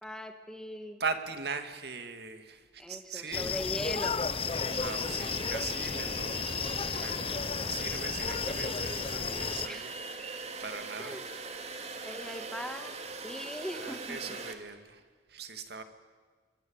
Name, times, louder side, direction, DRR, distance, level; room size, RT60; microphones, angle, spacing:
voice 1, 0.0-1.0 2.8-4.2 9.6-9.9 11.0-11.3 12.0-13.0 13.2-14.4, equal, 5° left, 6 dB, 2.1 m, -40 dB
voice 2, 1.0-3.5 4.7-6.7 6.9-9.9 10.2-11.2 13.7-15.0 15.3-15.8, right 4 dB, 60° right, 8 dB, 2.4 m, -40 dB
sound 1, 3.3-9.7, left 5 dB, 30° left, 0.7 m, -33 dB
sound 2, 3.3-3.4 3.8-14.5, right 4 dB, 40° right, 2.5 m, -42 dB
25.5 x 24.0 x 8.9 m, 1.5 s
head